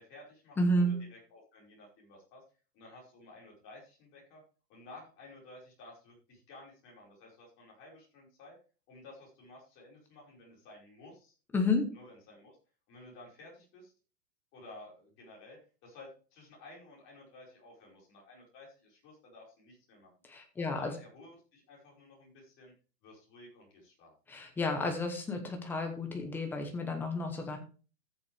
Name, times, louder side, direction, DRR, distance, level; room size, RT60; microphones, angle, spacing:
voice 1, 0.0-2.4 2.7-4.4 4.7-8.6 8.9-11.3 11.9-12.6 12.9-13.9 14.5-20.1 20.6-22.7 23.0-24.1, left 2 dB, 25° left, -2 dB, 5.2 m, -54 dB
voice 2, 0.6-0.9 11.5-11.8 20.3-20.9 24.3-27.6, left 1 dB, 5° left, 3 dB, 0.9 m, -31 dB
14.5 x 7.1 x 3.4 m, 0.35 s
hypercardioid pair, 160°, 48 cm